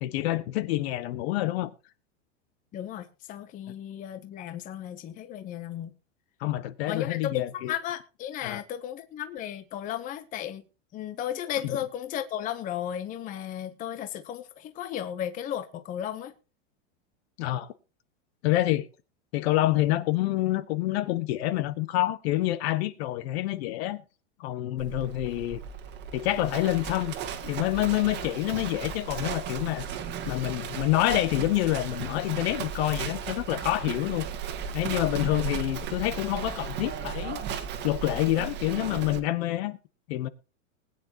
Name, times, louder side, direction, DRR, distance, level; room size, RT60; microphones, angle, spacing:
voice 1, 0.0-1.7 6.4-7.7 8.4-8.6 17.4-17.7 18.4-18.9 19.3-24.0 24.4-25.6 26.1-29.9 30.2-34.2 34.7-37.4 37.8-39.8 40.1-40.3, left 15 dB, 55° left, 1.3 m, -27 dB
voice 2, 2.7-5.9 6.9-10.6 10.9-16.3 35.1-35.3, left 10 dB, 20° left, 0.8 m, -34 dB
Livestock farm animals working animals, 24.8-39.2, right 7 dB, 30° right, 1.6 m, -36 dB
20.5 x 9.6 x 2.9 m
supercardioid pair, 150°, 38 cm